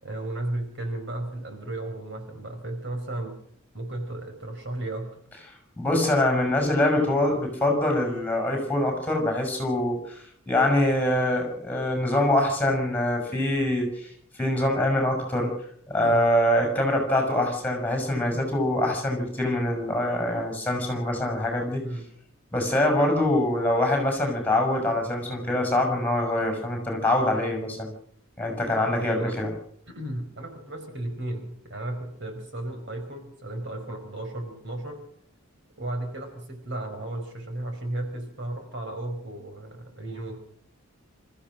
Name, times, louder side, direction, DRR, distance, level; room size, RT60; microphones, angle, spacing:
voice 1, 0.0-3.3 3.7-5.1 16.0-16.2 18.3-18.5 21.8-22.1 29.0-29.4 29.9-35.0 35.8-40.4, right 1 dB, 55° right, 5 dB, 4.9 m, -34 dB
voice 2, 5.8-14.1 14.4-15.5 15.9-21.8 22.5-27.9 28.4-29.5, left 1 dB, 10° left, 2 dB, 6.7 m, -24 dB
27.5 x 14.5 x 6.5 m, 0.66 s
head